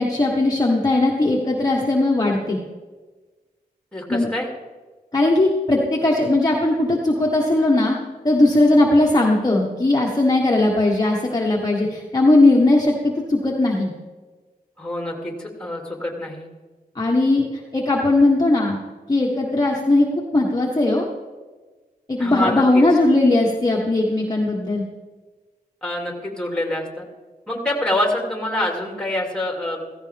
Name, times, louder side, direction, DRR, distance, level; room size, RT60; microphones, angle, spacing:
voice 1, 0.0-2.6 4.1-4.3 5.1-8.0 8.2-13.9 17.0-17.4 17.7-18.8 19.1-20.1 20.3-21.1 22.1-24.8, left 2 dB, 25° left, -3 dB, 1.6 m, -18 dB
voice 2, 3.9-4.5 14.8-16.5 22.2-22.8 25.8-27.0 27.5-29.8, left 1 dB, 5° left, 1 dB, 2.8 m, -26 dB
16.0 x 15.5 x 3.6 m, 1.3 s
wide cardioid pair, 120°, 16 cm